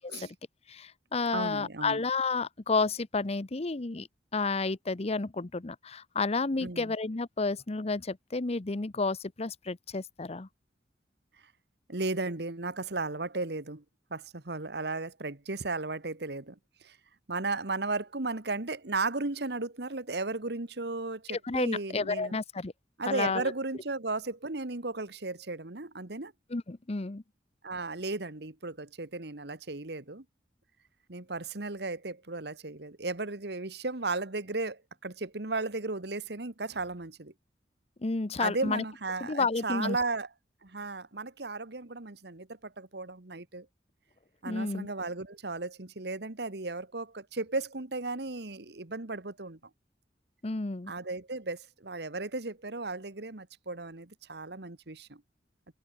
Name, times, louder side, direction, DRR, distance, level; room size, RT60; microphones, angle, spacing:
voice 1, 0.7-10.5 21.3-22.7 23.1-23.5 26.5-27.2 38.0-38.8 39.2-40.0 44.4-44.9 50.4-50.9, left 3 dB, 35° left, 0.8 m, -31 dB
voice 2, 1.3-2.0 6.6-6.9 11.9-13.8 14.1-16.6 16.8-17.0 17.3-22.4 23.0-26.3 27.6-30.2 31.1-37.3 38.4-40.3 40.6-43.7 44.4-49.6 50.9-55.2, right 3 dB, 65° right, 1.7 m, -35 dB
head